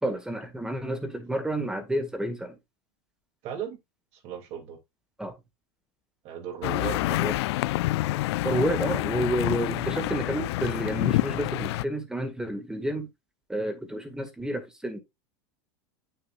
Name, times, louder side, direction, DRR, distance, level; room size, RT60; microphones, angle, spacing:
voice 1, 0.0-2.6 5.2-5.3 7.2-7.3 8.4-13.1 13.5-15.0, right 1 dB, 5° right, 1.9 m, -30 dB
voice 2, 3.4-3.8 4.1-4.8 6.2-7.4 9.6-9.8, right 9 dB, 50° right, 2.7 m, -37 dB
sound 1, 6.6-11.8, left 18 dB, 75° left, 0.4 m, -27 dB
8.5 x 7.0 x 2.5 m
supercardioid pair, 140°, 14 cm